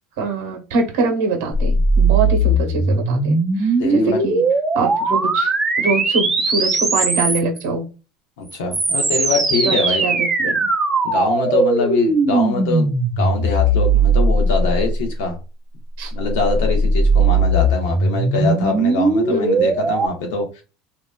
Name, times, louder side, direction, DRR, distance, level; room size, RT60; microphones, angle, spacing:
voice 1, 0.2-4.4 4.7-5.5 5.8-7.9 9.6-10.7 16.0-16.1 19.3-19.7, right 3 dB, 80° right, 3 dB, 0.8 m, -24 dB
sound 1, 1.5-7.6 8.5-15.1 16.2-20.1, right 2 dB, 15° right, 0.5 m, -18 dB
voice 2, 3.8-4.2 8.4-10.0 11.0-12.9 13.2-15.4 16.1-20.6, left 3 dB, 85° left, 3 dB, 1.0 m, -23 dB
2.9 x 2.2 x 2.2 m, 0.31 s
supercardioid pair, 130°, 0 cm